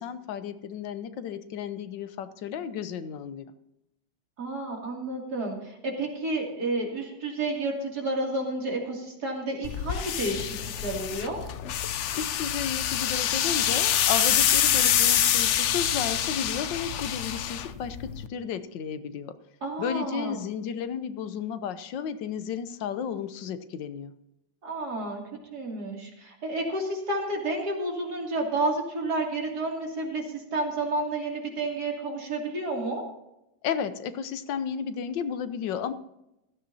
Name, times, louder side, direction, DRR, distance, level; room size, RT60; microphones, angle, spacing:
voice 1, 0.0-3.5 12.1-19.3 19.8-24.1 33.6-35.9, left 7 dB, 90° left, 12 dB, 1.5 m, -33 dB
voice 2, 4.4-11.4 19.6-20.3 24.6-25.2 25.5-33.0, right 2 dB, 60° right, -1 dB, 3.2 m, -30 dB
sound 1, 9.6-18.3, left 10 dB, 70° left, 0.7 m, -26 dB
16.5 x 13.0 x 2.8 m, 0.86 s
omnidirectional pair, 1.9 m